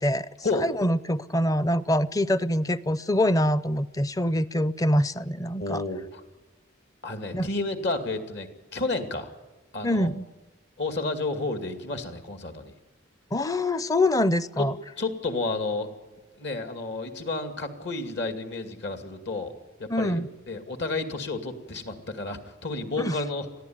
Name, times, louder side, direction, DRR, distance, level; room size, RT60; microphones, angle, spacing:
voice 1, 0.6-5.8 7.3-7.5 9.8-10.2 13.3-14.8 19.9-20.3 23.0-23.2, left 1 dB, 20° left, 17 dB, 0.6 m, -24 dB
voice 2, 5.6-6.2 7.0-9.3 9.7-10.1 10.8-12.7 15.0-15.9 16.4-19.5 19.8-20.2 20.5-23.5, left 3 dB, 60° left, 7 dB, 2.4 m, -31 dB
22.5 x 14.5 x 9.4 m, 1.2 s
head